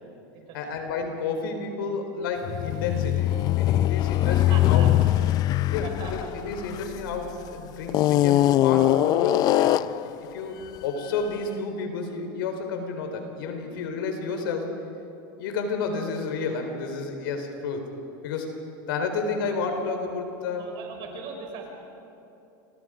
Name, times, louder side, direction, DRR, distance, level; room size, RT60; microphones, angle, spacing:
voice 1, 0.5-4.9 5.7-9.9 10.2-14.7 15.4-17.8 18.2-18.5 18.9-20.7, left 4 dB, 85° left, 5 dB, 4.1 m, -31 dB
sound 1, 2.4-7.3 7.9-10.1, left 14 dB, 35° left, 0.4 m, -22 dB
voice 2, 4.3-4.9 5.3-6.3 6.8-7.0 20.6-21.7, right 5 dB, 45° right, 2 dB, 5.2 m, -40 dB
29.5 x 23.0 x 5.1 m, 2.8 s
supercardioid pair, 145°, 11 cm